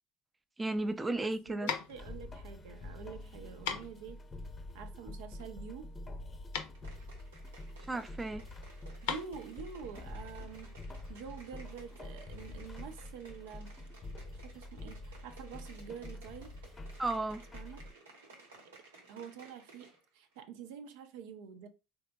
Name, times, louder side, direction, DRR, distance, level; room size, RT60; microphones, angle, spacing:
voice 1, 0.6-1.7 7.9-8.5 17.0-17.4, right 2 dB, 15° right, 0.4 m, -34 dB
sound 1, 0.7-10.6, left 7 dB, 75° left, 0.6 m, -42 dB
voice 2, 1.2-4.2 4.7-5.9 9.0-10.7 11.1-13.8 14.4-16.5 17.5-17.9 19.1-21.7, right 7 dB, 75° right, 0.5 m, -47 dB
sound 2, 2.0-17.9, left 1 dB, 25° left, 0.6 m, -47 dB
sound 3, 6.7-20.0 20.3-20.4, right 2 dB, 90° right, 0.9 m, -58 dB
3.4 x 2.9 x 2.3 m
hypercardioid pair, 75°, 0 cm